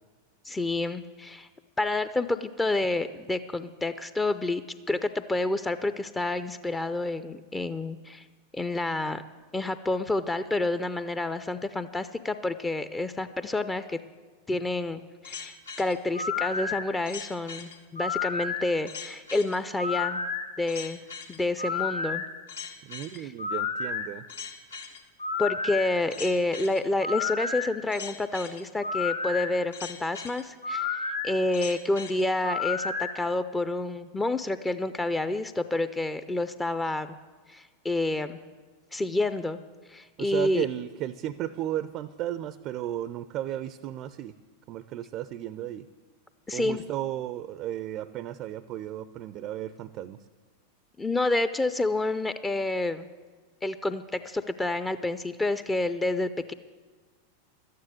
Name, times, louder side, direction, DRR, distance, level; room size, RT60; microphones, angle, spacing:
voice 1, 0.5-1.5 1.8-8.3 8.5-9.2 9.5-14.0 14.5-20.2 20.6-21.0 21.3-22.2 23.2-23.3 25.4-37.1 37.5-38.4 38.9-39.6 39.9-40.7 46.5-46.8 51.0-53.1 53.6-56.5, left 2 dB, 10° left, 12 dB, 0.5 m, -29 dB
sound 1, 15.2-33.1, left 5 dB, 70° left, 1.2 m, -32 dB
voice 2, 22.8-24.2 40.2-44.3 44.7-45.9 46.5-50.2, right 12 dB, 35° right, 14 dB, 0.5 m, -34 dB
12.5 x 9.5 x 7.9 m, 1.4 s
figure-of-eight pair, 90°, 0 cm